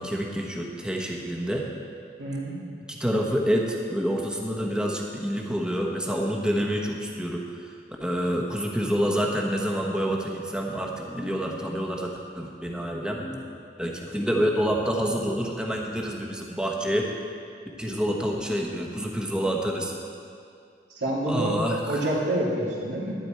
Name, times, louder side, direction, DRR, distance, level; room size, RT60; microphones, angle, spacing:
voice 1, 0.0-1.6 2.9-7.4 8.0-13.4 13.8-17.1 17.8-19.9 21.3-22.0, equal, 5° right, -1 dB, 1.1 m, -27 dB
voice 2, 2.2-2.5 20.9-21.6 21.9-23.2, right 1 dB, 85° right, -5 dB, 2.7 m, -27 dB
11.5 x 11.0 x 4.5 m, 2.4 s
head